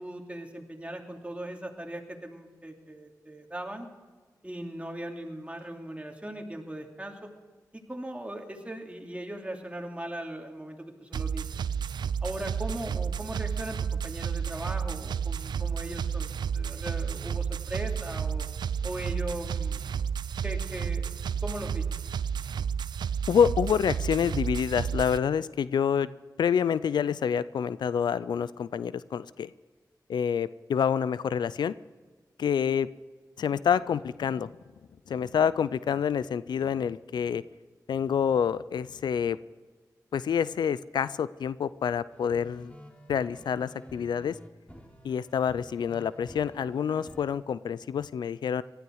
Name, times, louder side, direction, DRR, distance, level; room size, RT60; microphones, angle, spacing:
voice 1, 0.0-3.9 4.4-7.2 7.7-11.4 12.2-18.5 18.8-19.8 20.4-21.1 21.4-21.8, right 1 dB, 15° right, 2 dB, 2.9 m, -39 dB
sound 1, 11.1-25.2, right 7 dB, 85° right, 0.4 m, -31 dB
voice 2, 23.3-26.1 26.4-29.5 30.1-31.7 32.4-32.9 33.4-34.5 35.1-37.4 37.9-39.4 40.1-42.7 43.1-44.4 45.0-48.6, left 7 dB, 85° left, 17 dB, 0.4 m, -27 dB
sound 2, 42.1-47.3, equal, 20° left, 3.4 m, -50 dB
18.5 x 12.5 x 4.8 m, 1.4 s
cardioid pair, 40°, 7 cm